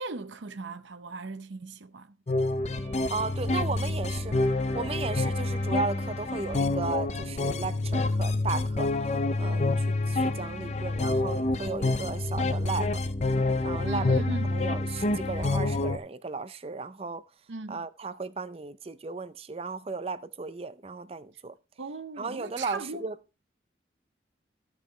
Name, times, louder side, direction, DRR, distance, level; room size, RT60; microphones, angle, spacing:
voice 1, 0.0-2.2 13.8-14.5 17.5-17.8 21.8-23.0, right 3 dB, 75° right, 0.7 m, -38 dB
sound 1, 2.3-16.0, left 2 dB, 35° left, 0.4 m, -28 dB
sound 2, 2.7-8.1, equal, 5° right, 1.5 m, -52 dB
voice 2, 3.1-4.4 4.7-8.9 9.4-13.0 13.6-17.2 17.7-21.5 22.2-23.2, right 4 dB, 30° right, 0.4 m, -35 dB
14.5 x 5.6 x 3.0 m
head